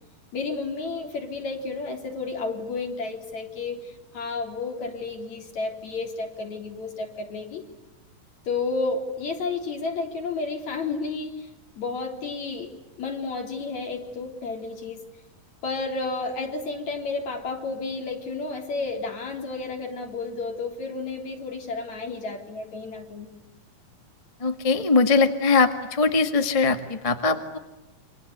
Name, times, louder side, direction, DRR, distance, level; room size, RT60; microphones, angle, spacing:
voice 1, 0.3-7.6 8.5-11.5 11.8-15.0 15.6-23.3, left 3 dB, 50° left, 3 dB, 4.7 m, -31 dB
voice 2, 24.4-27.6, left 4 dB, 30° left, 6 dB, 0.6 m, -21 dB
28.5 x 25.5 x 8.1 m, 1.1 s
omnidirectional pair, 4.1 m